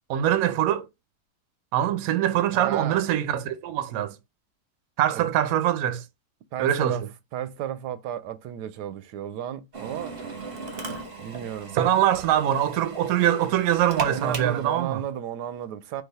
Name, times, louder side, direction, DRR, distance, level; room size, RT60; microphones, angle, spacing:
voice 1, 0.1-0.9 1.7-4.2 5.0-6.0 6.6-7.0 11.7-15.0, right 11 dB, 70° right, 1.0 m, -23 dB
voice 2, 2.5-3.1 5.1-5.2 6.5-7.0 7.3-10.2 11.2-11.8 14.1-16.0, right 10 dB, 85° right, 1.2 m, -33 dB
Drill, 9.7-14.8, right 4 dB, 40° right, 1.0 m, -37 dB
4.0 x 2.8 x 4.0 m
omnidirectional pair, 1.8 m